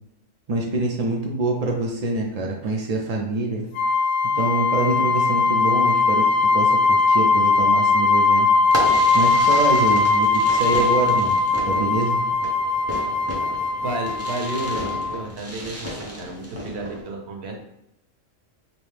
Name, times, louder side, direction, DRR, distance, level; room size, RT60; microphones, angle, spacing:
voice 1, 0.5-3.7 4.3-8.5 9.1-11.4 11.7-12.2, right 2 dB, 85° right, 0 dB, 0.3 m, -25 dB
sound 1, 3.7-15.2, left 3 dB, 65° left, 0.8 m, -20 dB
Fireworks, 8.6-17.0, equal, 15° right, 0.5 m, -34 dB
voice 2, 13.8-17.6, right 2 dB, 60° right, 2 dB, 0.9 m, -32 dB
5.3 x 2.0 x 3.2 m, 0.83 s
omnidirectional pair, 1.4 m